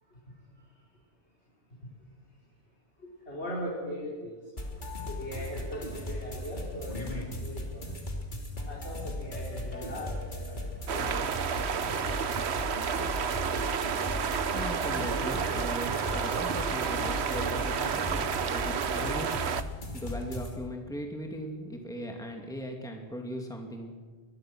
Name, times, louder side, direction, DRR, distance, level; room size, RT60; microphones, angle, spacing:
voice 1, 3.0-4.4 5.1-8.0 8.7-11.1 13.5-13.7, equal, 85° left, -5 dB, 5.0 m, -40 dB
sound 1, 4.6-20.6, left 1 dB, 45° left, 3.4 m, -37 dB
sound 2, 10.9-19.6, right 7 dB, 80° right, 1.2 m, -31 dB
voice 2, 14.5-19.4 19.9-23.9, equal, 5° left, 2 dB, 2.5 m, -38 dB
24.5 x 21.5 x 6.2 m, 1.4 s
omnidirectional pair, 1.1 m